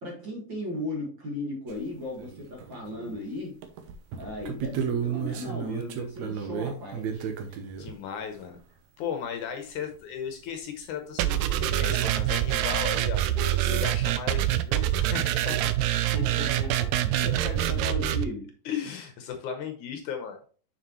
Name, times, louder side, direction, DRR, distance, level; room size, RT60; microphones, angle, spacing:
voice 1, 0.0-3.6 4.1-7.3 16.1-18.5, left 2 dB, 40° right, -2 dB, 2.0 m, -36 dB
sound 1, 1.7-1.8 2.2-3.2 3.6-7.9 10.6-10.7 10.8-10.9 12.0-12.1 12.6-12.7 16.3-16.4 16.6-17.0, right 7 dB, 70° right, 1.9 m, -33 dB
voice 2, 7.8-8.6 9.0-15.9 17.2-17.3 18.7-20.4, left 7 dB, 70° left, 5 dB, 2.1 m, -36 dB
sound 2, 11.2-18.2, right 13 dB, 85° right, 1.7 m, -25 dB
6.9 x 6.4 x 3.0 m, 0.40 s
omnidirectional pair, 3.9 m